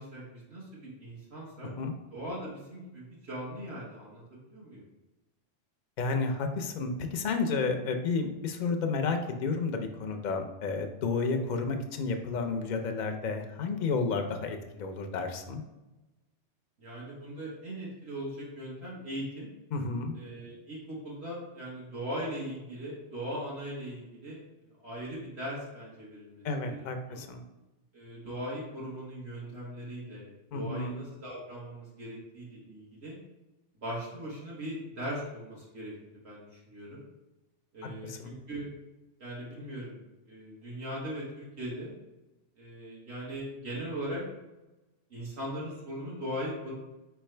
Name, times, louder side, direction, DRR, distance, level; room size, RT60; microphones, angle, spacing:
voice 1, 0.0-1.7 2.1-4.8 7.9-8.1 16.8-19.5 20.1-24.4 24.8-27.3 27.9-33.2 33.8-37.0 37.7-38.7 39.2-41.9 42.6-44.2 45.1-46.7, equal, 65° right, -6 dB, 1.3 m, -39 dB
voice 2, 6.0-15.6 19.7-20.2 26.4-27.4 30.5-31.0 38.0-38.3, left 4 dB, 55° left, 5 dB, 0.5 m, -31 dB
4.7 x 3.4 x 3.2 m, 1.0 s
omnidirectional pair, 1.2 m